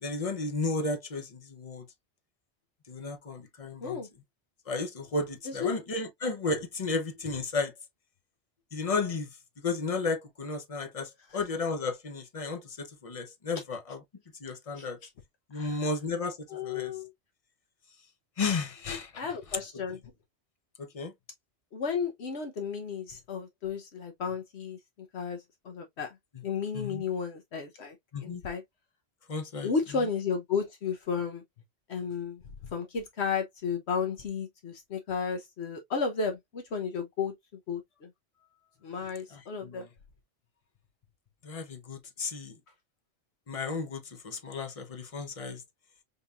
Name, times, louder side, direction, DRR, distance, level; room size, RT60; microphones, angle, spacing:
voice 1, 0.0-1.9 2.9-4.0 4.7-7.7 8.7-9.3 9.6-14.0 14.4-15.0 15.5-16.9 18.4-19.2 20.8-21.1 26.7-27.0 28.1-28.4 29.3-29.7 39.3-39.9 41.4-42.6 43.5-45.6, left 3 dB, 35° left, 0.8 m, -33 dB
voice 2, 16.5-17.1 19.2-20.0 21.7-24.8 25.1-26.2 26.4-28.6 29.6-31.4 31.9-32.4 32.7-37.3 37.7-38.1 38.8-39.8, left 5 dB, 70° left, 1.1 m, -33 dB
5.3 x 2.8 x 2.3 m
omnidirectional pair, 1.2 m